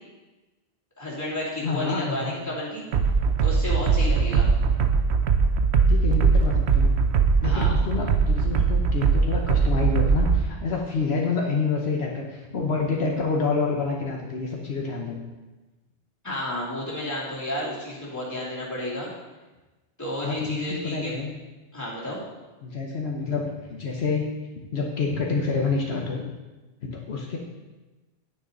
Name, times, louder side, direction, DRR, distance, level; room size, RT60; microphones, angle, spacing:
voice 1, 1.0-2.9 3.4-4.5 7.4-7.7 16.2-19.1 20.0-21.1 21.7-22.2, left 1 dB, 15° left, -7 dB, 3.0 m, -31 dB
voice 2, 1.6-2.3 5.9-7.0 7.4-15.2 20.2-21.3 22.6-24.3 24.7-26.2 26.8-27.4, left 4 dB, 70° left, -1 dB, 1.3 m, -28 dB
sound 1, 2.9-10.4, right 5 dB, 75° right, 1.0 m, -21 dB
9.7 x 9.2 x 4.0 m, 1.2 s
omnidirectional pair, 1.1 m